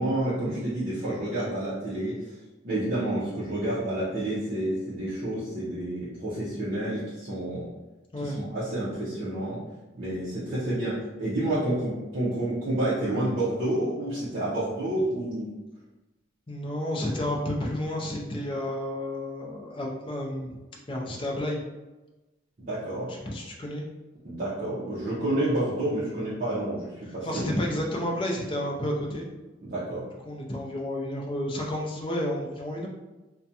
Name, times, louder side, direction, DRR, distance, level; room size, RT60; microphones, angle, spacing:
voice 1, 0.0-2.2 2.6-7.7 8.2-9.6 9.9-15.5 22.6-23.1 24.2-27.6 29.6-30.0, right 1 dB, 45° right, -10 dB, 0.6 m, -29 dB
voice 2, 8.1-8.4 16.5-20.6 20.9-21.6 23.3-23.8 27.2-29.3 30.2-32.9, left 1 dB, 25° left, -2 dB, 0.4 m, -31 dB
2.4 x 2.2 x 2.7 m, 1.1 s
head